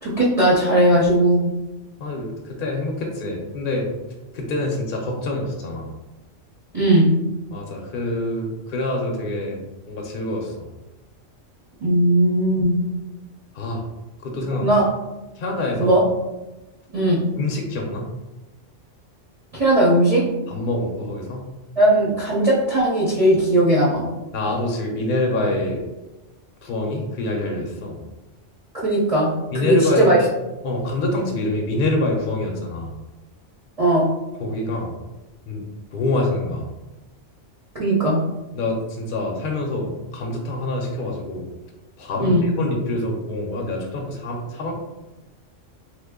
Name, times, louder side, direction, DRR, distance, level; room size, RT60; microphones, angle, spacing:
voice 1, 0.0-1.4 6.7-7.1 11.8-12.8 14.6-14.9 15.8-16.0 16.9-17.2 19.5-20.2 21.8-24.0 28.7-29.3 29.6-30.2 33.8-34.1 37.8-38.2 42.2-42.4, right 1 dB, 40° right, -7 dB, 0.6 m, -18 dB
voice 2, 2.0-3.9 4.3-5.9 7.5-9.6 9.9-10.7 13.5-13.8 14.2-14.7 15.4-16.0 17.4-18.1 20.5-21.5 24.3-25.8 26.6-28.0 29.5-30.2 30.6-33.0 34.4-35.0 35.5-35.7 35.9-36.7 38.5-41.5 42.0-44.7, left 2 dB, 55° left, 0 dB, 0.7 m, -26 dB
3.1 x 2.2 x 3.5 m, 1.0 s
omnidirectional pair, 1.3 m